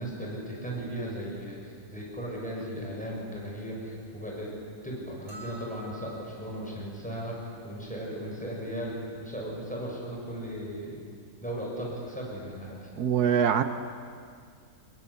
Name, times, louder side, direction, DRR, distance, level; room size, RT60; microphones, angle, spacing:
voice 1, 0.0-4.5 4.8-11.0 11.4-12.9, equal, 5° left, -3 dB, 6.7 m, -36 dB
sound 1, 5.3-6.6, right 3 dB, 50° right, 5.0 m, -47 dB
voice 2, 13.0-13.6, right 8 dB, 80° right, 10 dB, 1.4 m, -23 dB
25.0 x 22.0 x 8.4 m, 2.2 s
omnidirectional pair, 1.7 m